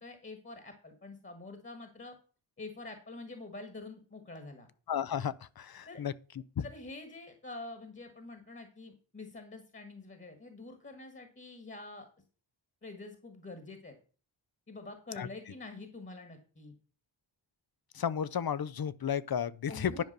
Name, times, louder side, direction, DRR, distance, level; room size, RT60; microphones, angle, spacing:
voice 1, 0.0-2.2 2.6-4.7 5.9-6.0 6.6-12.1 12.8-13.9 14.7-16.7 19.7-20.0, left 2 dB, 25° left, 1.6 m, -46 dB
voice 2, 4.9-6.1 6.6-6.7 15.2-15.3 17.9-20.0, left 8 dB, 55° left, 0.7 m, -33 dB
10.5 x 5.2 x 6.7 m
wide cardioid pair, 120°, 46 cm